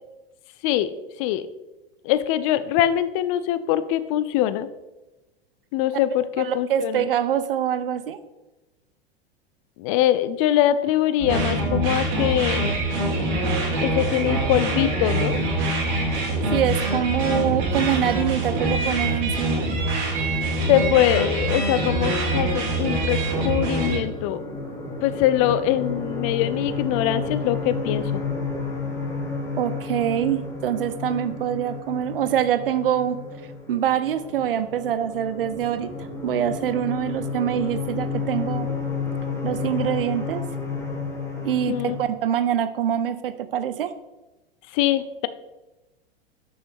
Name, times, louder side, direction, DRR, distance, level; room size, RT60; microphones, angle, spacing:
voice 1, 2.0-4.7 5.7-7.1 9.8-12.6 13.6-15.4 20.7-23.2 23.4-24.4 25.0-28.2 41.7-41.9 44.7-45.3, left 12 dB, 35° left, 14 dB, 0.4 m, -23 dB
voice 2, 6.4-8.2 16.5-19.7 29.6-33.2 33.7-35.9 36.2-38.7 39.4-40.4 41.4-43.9, right 10 dB, 65° right, 13 dB, 0.6 m, -24 dB
sound 1, 11.2-24.0, right 2 dB, 45° right, 1.7 m, -24 dB
sound 2, 22.8-42.1, left 4 dB, 10° left, 1.1 m, -31 dB
6.3 x 6.0 x 3.2 m, 1.1 s
figure-of-eight pair, 90°, 31 cm